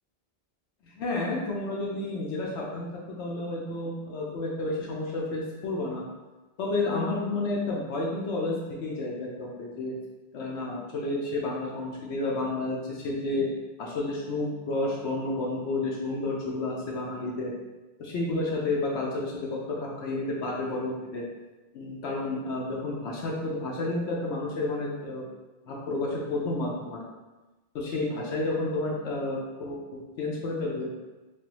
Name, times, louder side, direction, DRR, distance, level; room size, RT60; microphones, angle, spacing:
voice 1, 0.9-6.0 6.6-9.9 10.3-13.5 13.8-17.5 18.0-21.2 21.7-25.3 25.6-27.0 27.7-30.9, left 2 dB, 80° left, -3 dB, 0.9 m, -31 dB
3.2 x 2.1 x 2.9 m, 1.1 s
omnidirectional pair, 1.1 m